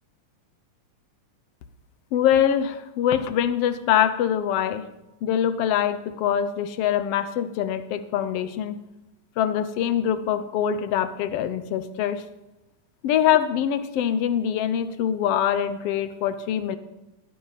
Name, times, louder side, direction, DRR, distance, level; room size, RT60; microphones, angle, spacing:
voice 1, 2.1-4.9 5.2-8.8 9.4-12.2 13.0-16.8, left 9 dB, 70° left, 11 dB, 1.5 m, -24 dB
19.5 x 12.0 x 4.2 m, 0.98 s
omnidirectional pair, 3.7 m